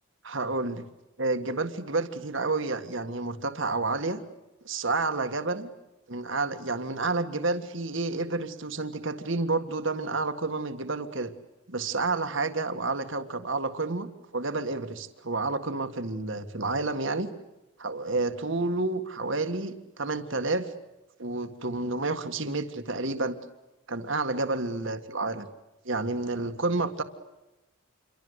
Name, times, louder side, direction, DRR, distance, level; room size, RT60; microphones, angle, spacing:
voice 1, 0.2-0.8 1.2-4.2 4.6-5.7 6.1-11.3 11.7-17.3 17.8-20.7 21.2-23.4 23.9-25.5 25.9-27.0, right 3 dB, 65° right, 8 dB, 1.8 m, -30 dB
28.0 x 24.0 x 8.1 m, 1.0 s
head